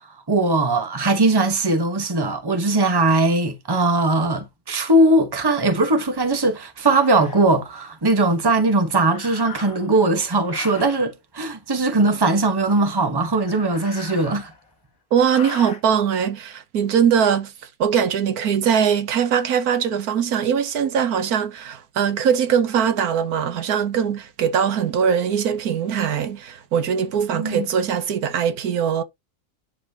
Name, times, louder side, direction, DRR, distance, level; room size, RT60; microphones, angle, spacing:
voice 1, 0.3-14.5 27.3-27.7, right 2 dB, 15° right, 1.1 m, -20 dB
sound 1, 6.0-6.1 6.9-7.4 9.0-10.0 10.4-11.1 13.2-14.7 15.1-15.8, left 6 dB, 65° left, 1.7 m, -39 dB
voice 2, 15.1-17.5 17.8-29.0, right 8 dB, 80° right, 1.4 m, -21 dB
10.5 x 4.2 x 2.8 m
omnidirectional pair, 1.6 m